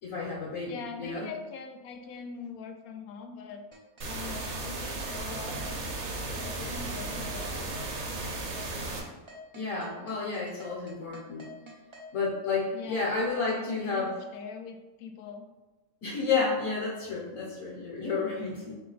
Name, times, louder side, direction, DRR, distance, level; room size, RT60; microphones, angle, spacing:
voice 1, 0.0-1.3 9.5-11.5 12.1-14.1 16.0-18.8, left 4 dB, 70° left, -6 dB, 1.4 m, -31 dB
voice 2, 0.7-3.6 4.1-8.1 12.7-15.5, left 5 dB, 90° left, 5 dB, 1.1 m, -43 dB
sound 1, 3.7-12.1, left 2 dB, 40° right, 0.4 m, -48 dB
sound 2, 4.0-9.0, right 2 dB, 70° right, 1.2 m, -35 dB
4.2 x 3.2 x 3.9 m, 1.2 s
omnidirectional pair, 1.5 m